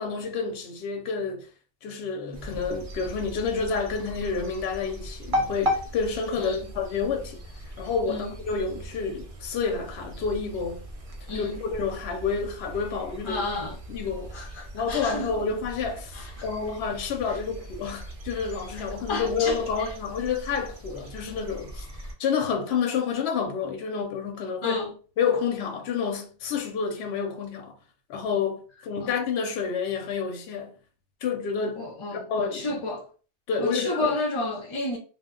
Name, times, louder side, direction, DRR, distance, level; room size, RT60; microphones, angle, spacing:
voice 1, 0.0-1.5 1.8-7.4 7.8-10.8 11.4-13.4 13.9-14.5 14.7-21.9 22.2-24.8 25.2-27.8 28.1-30.8 31.2-32.8 33.5-34.1, left 5 dB, 65° left, 0.8 m, -29 dB
sound 1, 2.3-22.1, equal, 45° right, 0.4 m, -37 dB
voice 2, 6.4-6.7 8.1-8.4 11.3-11.6 13.2-13.8 14.3-15.3 16.1-16.5 17.2-17.4 18.7-19.9 24.6-24.9 29.0-29.2 31.8-33.1 33.6-35.0, left 2 dB, 40° left, 0.4 m, -32 dB
2.1 x 2.0 x 3.6 m
omnidirectional pair, 1.3 m